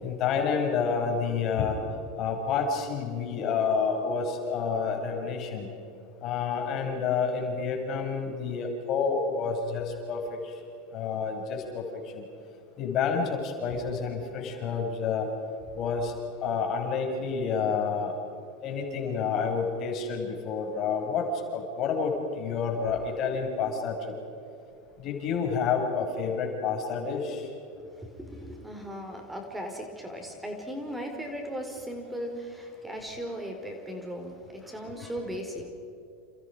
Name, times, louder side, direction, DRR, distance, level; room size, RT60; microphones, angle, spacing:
voice 1, 0.0-1.8 2.2-5.7 6.2-10.4 10.9-11.8 12.1-12.2 12.8-15.3 15.7-16.1 16.4-18.1 18.6-24.0 25.0-27.5, left 5 dB, 50° left, 2 dB, 6.5 m, -29 dB
voice 2, 27.7-35.7, equal, 5° right, 3 dB, 5.0 m, -37 dB
30.0 x 29.5 x 5.2 m, 2.7 s
hypercardioid pair, 90°, 0 cm